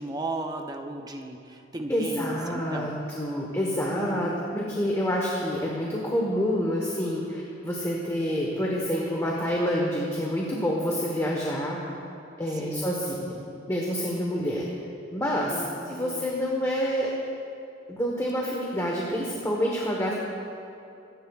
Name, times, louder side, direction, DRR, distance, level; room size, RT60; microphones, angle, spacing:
voice 1, 0.0-3.0 3.9-4.4 12.6-13.0 15.5-16.3, right 2 dB, 20° right, 3 dB, 0.7 m, -36 dB
voice 2, 1.9-12.0 12.4-13.4 13.7-14.6 15.1-17.1 17.9-20.1, equal, 15° left, -3 dB, 1.1 m, -28 dB
24.0 x 10.5 x 2.4 m, 2.8 s
head